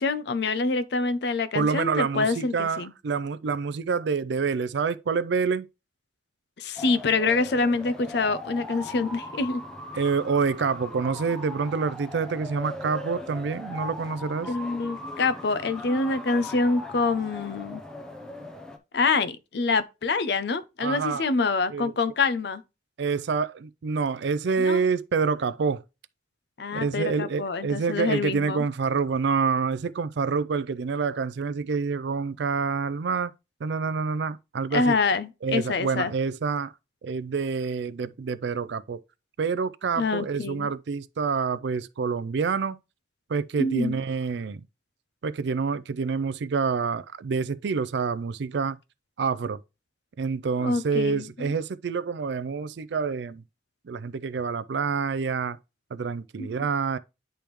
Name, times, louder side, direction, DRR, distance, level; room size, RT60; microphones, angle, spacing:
voice 1, 0.0-2.9 6.6-9.6 14.5-17.8 18.9-22.6 24.6-24.8 26.6-28.6 34.7-36.1 40.0-40.7 43.6-44.0 50.6-51.5 56.4-56.5, left 3 dB, 60° left, 0.5 m, -26 dB
voice 2, 1.5-5.7 9.9-14.5 20.8-21.3 21.7-21.9 23.0-25.8 26.7-33.3 33.6-35.0 35.4-36.7 37.0-39.0 39.4-42.8 43.3-44.6 45.2-48.8 49.2-49.6 50.2-53.4 53.8-55.6 55.9-57.0, right 5 dB, 65° right, 0.4 m, -27 dB
sound 1, 6.8-18.8, left 1 dB, 5° left, 0.6 m, -39 dB
10.0 x 3.4 x 3.0 m
head